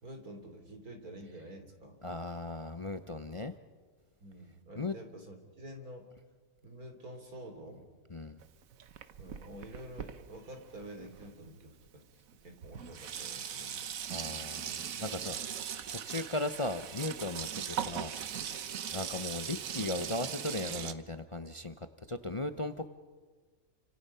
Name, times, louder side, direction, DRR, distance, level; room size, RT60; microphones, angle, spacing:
voice 1, 0.0-2.0 4.2-6.1 6.6-7.9 9.2-13.9 15.3-15.6, right 1 dB, 85° right, 5 dB, 3.8 m, -48 dB
voice 2, 2.0-3.5 4.8-5.0 8.1-8.4 14.1-15.4 15.9-18.1 18.4-22.9, left 2 dB, 30° left, 8 dB, 0.6 m, -37 dB
Sink (filling or washing), 8.4-11.5 12.3-12.4 12.6-20.9, right 8 dB, 70° right, 1.3 m, -40 dB
30.0 x 26.0 x 5.7 m, 1.4 s
omnidirectional pair, 1.5 m